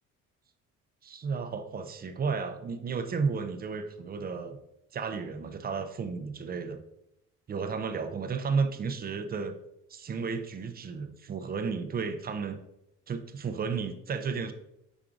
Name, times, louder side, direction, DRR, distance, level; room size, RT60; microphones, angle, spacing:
voice 1, 1.0-4.6 4.9-6.8 7.5-9.6 9.9-12.6 13.1-14.5, right 5 dB, 30° right, 8 dB, 0.4 m, -33 dB
5.9 x 3.6 x 2.5 m, 0.83 s
cardioid pair, 105°, 30 cm